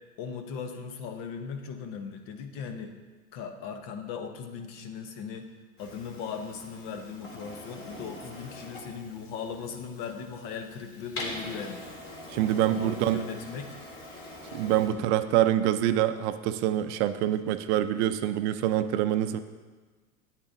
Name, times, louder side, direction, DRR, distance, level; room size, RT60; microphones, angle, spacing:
voice 1, 0.2-2.9 3.3-5.5 5.8-11.8 12.7-13.8 14.8-15.1, left 6 dB, 50° left, 6 dB, 1.1 m, -38 dB
Printer, 5.8-14.9, left 1 dB, 30° left, 2.2 m, -43 dB
voice 2, 12.3-13.2 14.5-19.4, right 12 dB, 50° right, 11 dB, 0.5 m, -25 dB
9.1 x 8.5 x 2.7 m, 1.4 s
hypercardioid pair, 105°, 43 cm